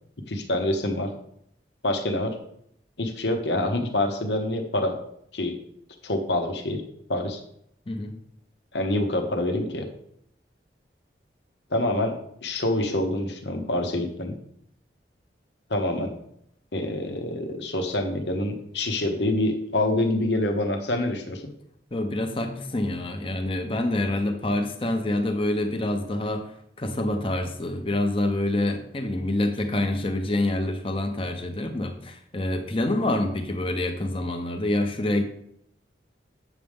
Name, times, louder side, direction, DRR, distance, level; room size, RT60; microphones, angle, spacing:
voice 1, 0.3-1.1 1.8-2.4 3.0-5.0 5.3-5.6 6.0-6.8 7.1-7.4 8.7-9.9 11.7-14.4 15.7-16.1 16.7-21.5, left 1 dB, 75° left, 4 dB, 1.1 m, -26 dB
voice 2, 21.9-26.5 26.8-35.2, left 1 dB, 30° left, 6 dB, 0.9 m, -26 dB
8.3 x 6.5 x 3.6 m, 0.72 s
head